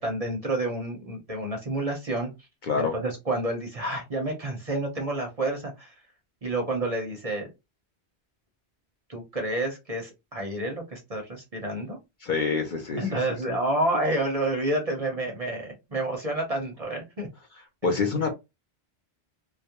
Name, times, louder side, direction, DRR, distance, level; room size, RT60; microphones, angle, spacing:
voice 1, 0.0-2.3 2.8-5.9 6.4-7.5 9.1-12.0 13.0-17.3, right 1 dB, 40° right, 2 dB, 0.6 m, -29 dB
voice 2, 12.2-13.2 13.5-13.6 17.8-18.3, left 4 dB, 55° left, 2 dB, 0.6 m, -26 dB
2.3 x 2.1 x 2.8 m, 0.23 s
omnidirectional pair, 1.1 m